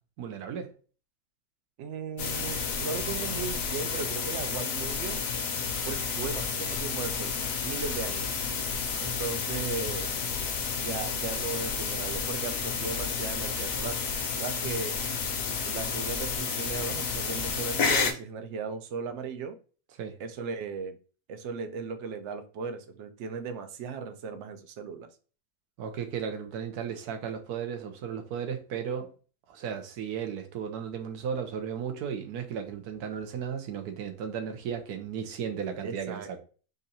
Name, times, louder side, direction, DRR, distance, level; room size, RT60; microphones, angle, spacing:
voice 1, 0.2-0.7 20.0-20.2 25.8-29.1 29.5-36.4, right 7 dB, 75° right, 1.3 m, -35 dB
voice 2, 1.8-5.3 5.8-7.4 7.6-8.4 9.0-10.2 10.8-14.0 14.4-15.0 15.7-19.6 20.2-21.0 21.3-25.1 35.8-36.4, right 5 dB, 60° right, 0.8 m, -37 dB
sound 1, 2.2-18.1, left 5 dB, 65° left, 1.1 m, -31 dB
sound 2, 6.6-14.2, left 5 dB, 45° left, 0.8 m, -47 dB
3.8 x 2.6 x 4.1 m
omnidirectional pair, 1.7 m